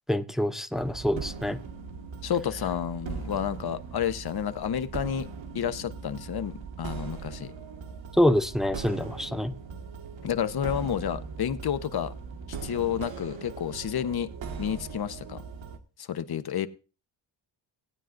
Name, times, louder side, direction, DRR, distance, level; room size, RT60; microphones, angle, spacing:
voice 1, 0.1-1.6 8.1-9.5, left 1 dB, ahead, 0.5 m, -26 dB
sound 1, 0.8-15.8, right 5 dB, 70° right, 1.6 m, -40 dB
voice 2, 2.2-5.3 5.5-7.5 10.2-12.1 12.6-14.3 14.6-15.4 16.0-16.7, left 9 dB, 50° left, 0.9 m, -30 dB
18.0 x 9.1 x 2.5 m
cardioid pair, 110°, 48 cm